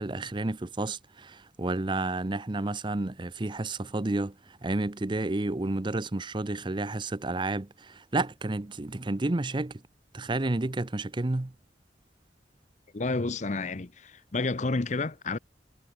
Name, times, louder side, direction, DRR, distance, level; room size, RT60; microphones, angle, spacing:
voice 1, 0.0-9.8 10.1-11.5, right 2 dB, 25° right, 0.7 m, -31 dB
voice 2, 12.9-15.4, left 3 dB, 40° left, 0.8 m, -30 dB
head